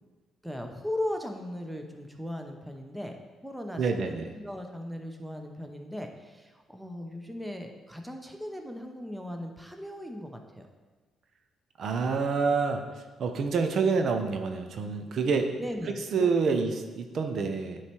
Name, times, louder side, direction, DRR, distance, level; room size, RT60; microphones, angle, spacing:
voice 1, 0.4-3.2 3.4-10.7 15.6-16.7, left 1 dB, 5° right, 3 dB, 0.8 m, -38 dB
voice 2, 3.8-4.3 11.8-12.8 13.2-15.5 16.1-17.8, right 5 dB, 65° right, 6 dB, 0.6 m, -27 dB
9.6 x 3.2 x 4.4 m, 1.3 s
cardioid pair, 90°, 0 cm